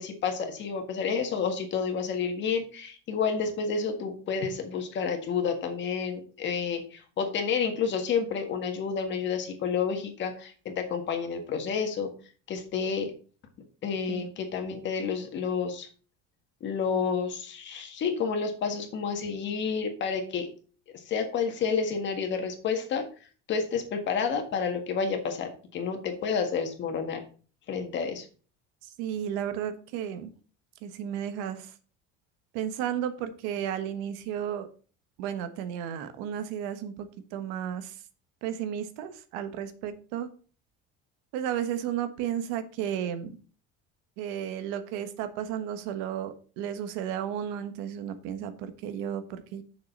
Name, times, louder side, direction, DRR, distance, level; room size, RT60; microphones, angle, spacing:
voice 1, 0.0-12.1 12.5-13.1 13.8-15.9 16.6-20.5 20.9-23.1 23.5-27.2 27.7-28.3, left 6 dB, 35° left, 5 dB, 1.7 m, -30 dB
voice 2, 28.8-30.3 30.8-31.7 32.5-34.7 35.2-38.0 38.4-40.3 41.3-43.4 44.2-49.6, right 9 dB, 85° right, 10 dB, 1.3 m, -33 dB
6.8 x 6.6 x 5.2 m, 0.39 s
cardioid pair, 165°, 31 cm